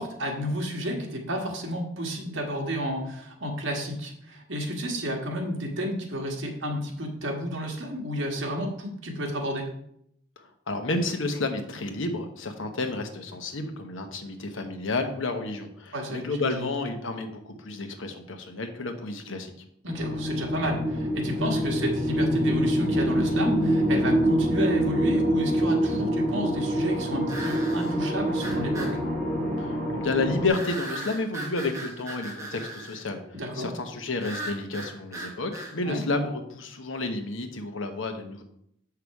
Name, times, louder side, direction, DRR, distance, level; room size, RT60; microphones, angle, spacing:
voice 1, 0.0-9.7 15.9-16.7 19.8-29.0 33.3-33.7 35.8-36.0, equal, 80° right, 1 dB, 1.7 m, -31 dB
voice 2, 10.7-19.5 29.6-33.2 33.6-38.4, left 2 dB, 85° left, 6 dB, 1.1 m, -31 dB
sound 1, 19.9-30.5, equal, 5° left, 2.1 m, -25 dB
sound 2, 27.3-28.0 28.4-29.0 30.5-33.0 34.2-35.7, right 2 dB, 15° right, 1.2 m, -38 dB
6.9 x 5.8 x 4.7 m, 0.72 s
head